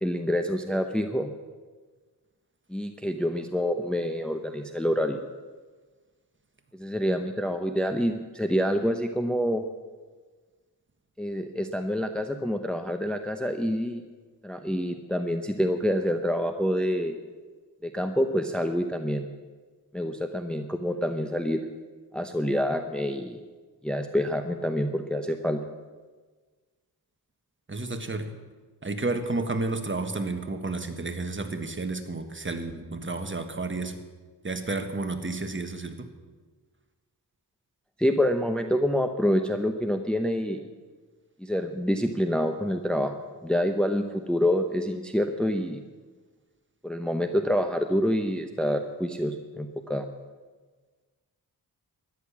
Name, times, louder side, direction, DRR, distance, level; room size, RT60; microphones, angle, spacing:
voice 1, 0.0-1.3 2.7-5.2 6.7-9.6 11.2-14.0 14.4-17.2 17.8-19.3 19.9-21.6 22.1-23.4 23.8-25.6 38.0-40.6 41.4-43.1 43.4-45.8 46.8-50.1, equal, ahead, 6 dB, 0.8 m, -27 dB
voice 2, 27.7-28.3 28.8-34.0 34.4-36.1, right 3 dB, 30° right, 6 dB, 1.5 m, -31 dB
13.5 x 10.5 x 7.2 m, 1.4 s
cardioid pair, 70°, 40 cm